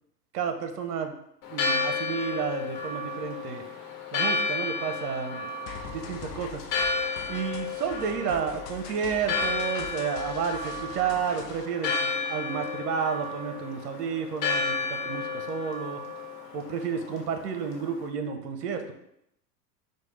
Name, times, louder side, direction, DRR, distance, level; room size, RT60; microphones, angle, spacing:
voice 1, 0.3-1.1 1.5-3.6 4.1-5.5 5.8-6.7 7.3-16.0 16.5-18.9, right 6 dB, 65° right, 6 dB, 0.9 m, -31 dB
Church bell, 1.4-18.1, left 4 dB, 50° left, 1.2 m, -32 dB
sound 1, 5.7-11.7, left 6 dB, 75° left, 0.7 m, -43 dB
4.4 x 2.4 x 4.7 m, 0.76 s
hypercardioid pair, 100°, 49 cm